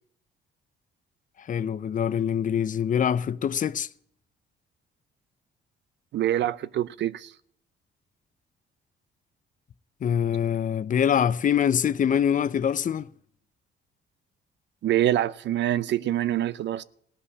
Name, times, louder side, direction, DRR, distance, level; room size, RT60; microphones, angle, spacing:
voice 1, 1.4-3.9 10.0-13.1, left 8 dB, 40° left, 0.5 m, -24 dB
voice 2, 6.1-7.3 14.8-16.8, right 12 dB, 65° right, 0.6 m, -25 dB
16.5 x 5.7 x 9.6 m
cardioid pair, 90°, 20 cm